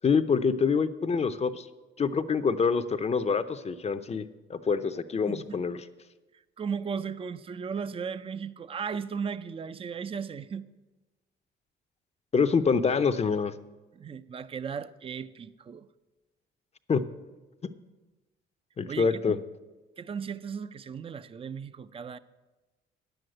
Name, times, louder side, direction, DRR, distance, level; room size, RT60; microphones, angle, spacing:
voice 1, 0.0-1.7 2.0-4.2 4.5-5.8 12.3-13.5 16.9-17.0 18.8-19.4, left 5 dB, 30° left, 0.6 m, -26 dB
voice 2, 5.3-5.6 6.6-10.6 13.9-15.9 18.9-19.1 20.0-22.2, right 6 dB, 30° right, 0.4 m, -36 dB
9.8 x 7.9 x 7.7 m
cardioid pair, 90°, 20 cm